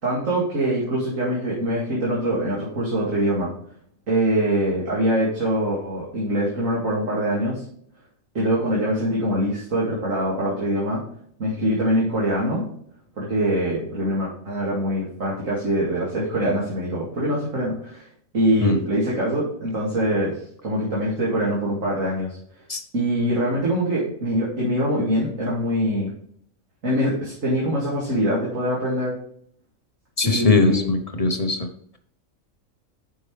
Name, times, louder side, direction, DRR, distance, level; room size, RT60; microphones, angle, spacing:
voice 1, 0.0-3.5 4.1-7.6 8.3-11.0 11.4-12.7 13.2-18.0 18.3-20.3 20.6-22.4 22.9-26.1 26.8-29.1 30.2-30.9, equal, 70° right, -6 dB, 2.8 m, -23 dB
voice 2, 30.2-31.7, left 3 dB, 30° left, 5 dB, 0.8 m, -21 dB
9.3 x 6.2 x 3.3 m, 0.62 s
omnidirectional pair, 1.4 m